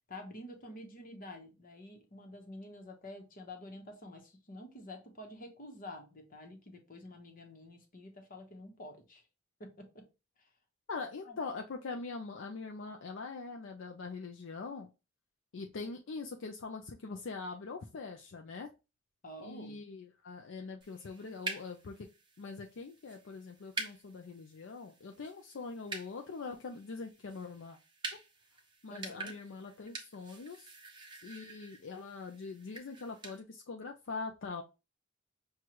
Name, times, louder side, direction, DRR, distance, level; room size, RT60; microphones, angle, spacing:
voice 1, 0.1-9.2 9.6-10.0 10.4-10.5 11.3-11.4 19.2-19.8 28.9-29.3, left 1 dB, 40° left, 4 dB, 1.0 m, -48 dB
voice 2, 10.9-14.9 15.5-18.7 19.4-22.0 22.4-27.8 28.8-30.7 31.2-34.6, left 4 dB, 65° left, 3 dB, 0.5 m, -43 dB
sound 1, 20.8-33.4, right 3 dB, 25° right, 0.9 m, -47 dB
6.2 x 2.3 x 2.9 m, 0.28 s
head